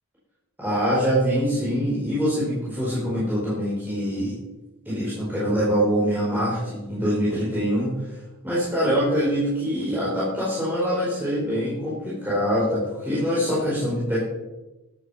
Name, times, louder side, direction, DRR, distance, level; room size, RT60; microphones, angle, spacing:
voice 1, 0.6-4.3 4.8-8.2 8.4-14.3, equal, 10° right, -8 dB, 4.8 m, -24 dB
13.5 x 11.0 x 5.8 m, 1.1 s
head